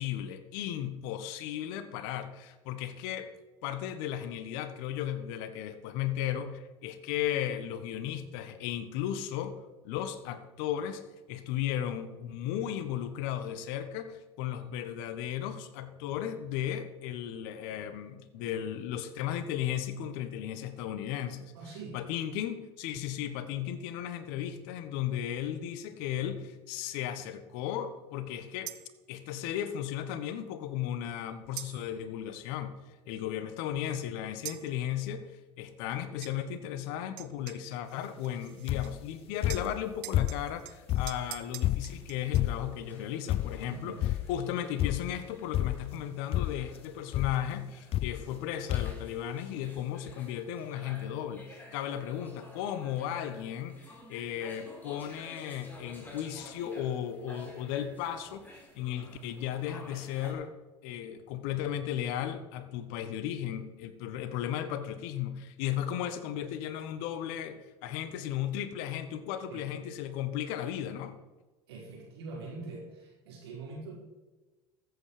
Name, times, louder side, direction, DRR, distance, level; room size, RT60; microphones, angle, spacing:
voice 1, 0.0-3.3 3.6-11.0 11.3-21.5 21.9-28.8 29.1-32.7 33.1-44.0 44.3-60.5 60.8-71.1, left 10 dB, 70° left, 11 dB, 1.3 m, -35 dB
voice 2, 21.5-22.0 43.7-44.0 69.5-69.8 71.7-73.9, right 3 dB, 85° right, -2 dB, 4.8 m, -43 dB
sound 1, 28.7-29.0 31.6-32.0 34.4-34.7 36.2-36.4 37.2-39.2 39.5-42.4, right 18 dB, 65° right, 0.8 m, -45 dB
sound 2, 38.7-39.1 39.4-40.6 40.9-42.8 43.3-43.7 44.0-44.4 44.8-45.2 45.5-46.0 46.3-46.8 47.1-47.4 47.9-48.4 48.7-49.1 49.8-49.9 50.1-50.2, left 13 dB, 45° left, 0.5 m, -31 dB
sound 3, 40.5-60.3, left 1 dB, 15° left, 4.1 m, -53 dB
14.5 x 8.3 x 5.0 m, 1.2 s
hypercardioid pair, 80°, 13 cm